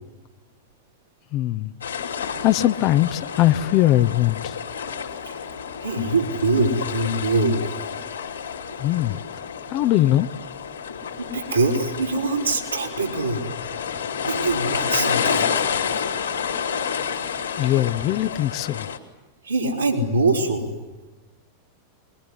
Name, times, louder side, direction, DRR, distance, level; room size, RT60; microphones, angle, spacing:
voice 1, 1.3-1.7 2.4-4.6 8.8-9.2 9.7-10.3 17.6-18.9, left 14 dB, 40° left, 12 dB, 0.8 m, -20 dB
sound 1, 1.8-19.0, left 7 dB, 75° left, 3.1 m, -29 dB
voice 2, 5.8-7.6 11.2-13.5 14.2-15.7 19.4-20.7, right 2 dB, 85° right, -4 dB, 4.1 m, -23 dB
25.0 x 22.0 x 10.0 m, 1.2 s
figure-of-eight pair, 90°, 0 cm